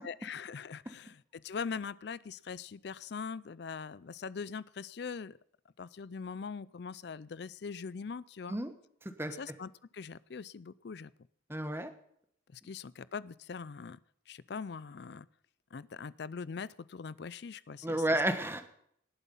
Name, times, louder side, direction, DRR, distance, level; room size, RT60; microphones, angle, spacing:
voice 1, 0.0-5.4 5.8-8.6 9.3-11.1 12.5-14.0 14.3-15.3 15.7-18.0, left 5 dB, 55° left, 19 dB, 0.4 m, -42 dB
voice 2, 11.5-11.9 17.8-18.6, right 1 dB, 10° right, 8 dB, 1.2 m, -31 dB
18.5 x 8.2 x 5.5 m, 0.67 s
head